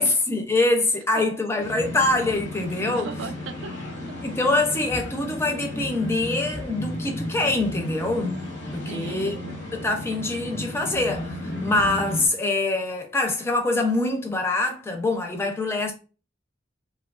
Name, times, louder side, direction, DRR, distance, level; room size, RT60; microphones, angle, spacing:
voice 1, 0.0-3.1 4.2-8.4 8.6-9.3 9.7-15.9, left 2 dB, 15° left, 0.4 m, -24 dB
sound 1, 1.6-12.3, left 1 dB, 65° left, 0.8 m, -33 dB
voice 2, 2.8-4.2 8.8-9.7, right 5 dB, 85° right, 0.4 m, -38 dB
2.9 x 2.2 x 2.3 m
head